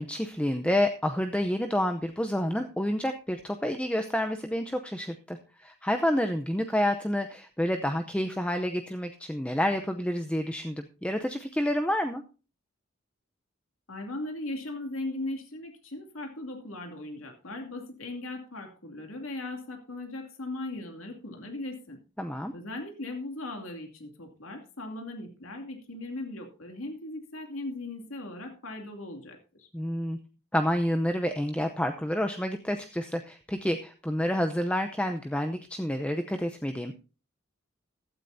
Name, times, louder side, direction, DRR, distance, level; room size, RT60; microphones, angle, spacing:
voice 1, 0.0-12.2 22.2-22.5 29.7-30.2 30.5-36.9, equal, 5° left, 6 dB, 0.6 m, -29 dB
voice 2, 13.9-22.0 22.5-29.7, left 2 dB, 85° left, 3 dB, 2.6 m, -38 dB
15.5 x 12.5 x 2.7 m, 0.34 s
head